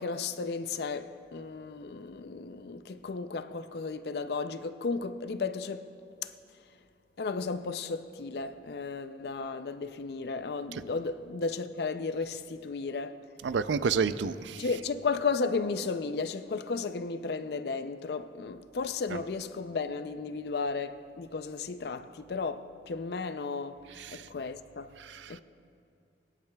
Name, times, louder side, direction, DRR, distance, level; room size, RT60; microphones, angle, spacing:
voice 1, 0.0-5.9 6.2-6.3 7.2-13.3 14.6-24.9 25.3-25.4, left 4 dB, 60° left, 0.4 m, -34 dB
voice 2, 13.4-14.8 19.1-19.2 24.0-24.2 25.0-25.3, right 5 dB, 85° right, 0.4 m, -30 dB
23.0 x 10.5 x 2.3 m
head